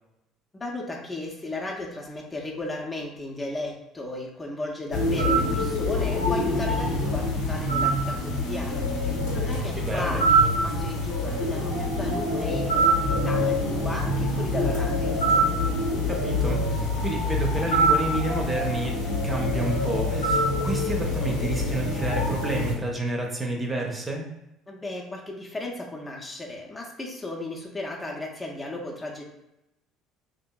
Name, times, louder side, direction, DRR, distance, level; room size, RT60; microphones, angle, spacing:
voice 1, 0.5-15.2 24.7-29.2, left 2 dB, 25° left, -1 dB, 0.6 m, -35 dB
sound 1, 4.9-22.7, equal, 80° left, 0.7 m, -25 dB
voice 2, 9.8-10.2 16.1-24.3, right 2 dB, 25° right, 0 dB, 0.7 m, -30 dB
2.8 x 2.5 x 2.3 m, 0.89 s
hypercardioid pair, 65°, 0 cm